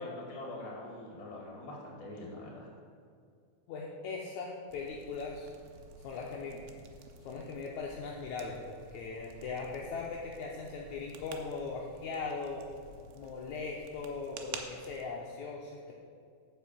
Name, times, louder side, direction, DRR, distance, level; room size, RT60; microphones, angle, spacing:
voice 1, 0.0-2.7, left 2 dB, 35° left, -2 dB, 2.4 m, -43 dB
voice 2, 3.7-5.5 6.0-6.6 7.2-12.7 13.1-15.9, left 4 dB, 75° left, -2 dB, 1.8 m, -39 dB
sound 1, 4.7-15.0, right 5 dB, 85° right, 2.7 m, -51 dB
8.2 x 6.0 x 7.3 m, 2.3 s
omnidirectional pair, 4.2 m